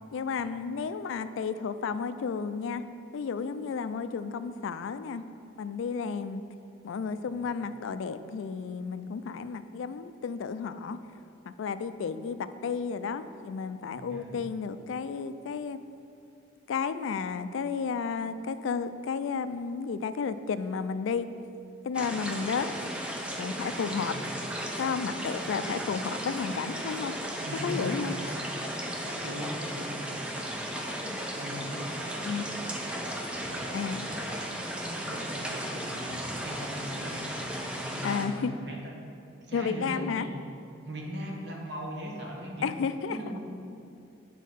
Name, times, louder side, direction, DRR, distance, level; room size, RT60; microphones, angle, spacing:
voice 1, 0.1-2.9 3.1-5.2 5.5-6.4 6.8-11.0 11.4-15.8 16.7-21.3 21.8-22.7 23.3-24.1 24.8-28.2 31.0-31.4 32.2-32.5 33.7-34.1 38.0-38.5 39.5-40.3 42.6-43.2, left 5 dB, 80° left, 12 dB, 0.3 m, -32 dB
voice 2, 13.9-14.3 24.0-24.4 25.6-25.8 27.4-28.4 29.0-30.7 31.4-32.4 32.8-33.1 33.5-34.5 34.8-39.0 39.4-40.3 40.8-42.7 43.1-43.4, equal, 60° right, -1 dB, 1.2 m, -39 dB
sound 1, 21.9-38.2, equal, 5° right, 0.5 m, -35 dB
8.4 x 4.1 x 5.6 m, 2.7 s
head